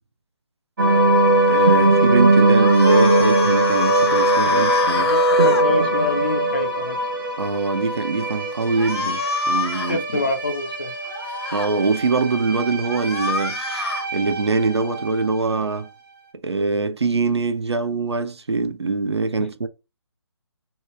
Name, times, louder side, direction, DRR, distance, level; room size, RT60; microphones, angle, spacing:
sound 1, 0.8-15.3, right 1 dB, 50° right, 0.9 m, -20 dB
voice 1, 1.5-5.1 7.4-10.3 11.5-13.6 14.1-15.9 16.4-19.7, right 4 dB, 70° right, 0.5 m, -23 dB
sound 2, 2.6-5.6 8.8-10.0 11.1-11.7 12.8-14.1, left 4 dB, 60° left, 0.7 m, -27 dB
voice 2, 5.0-7.0 9.9-10.9, left 3 dB, 25° left, 0.3 m, -26 dB
3.0 x 2.2 x 3.0 m
figure-of-eight pair, 145°, 14 cm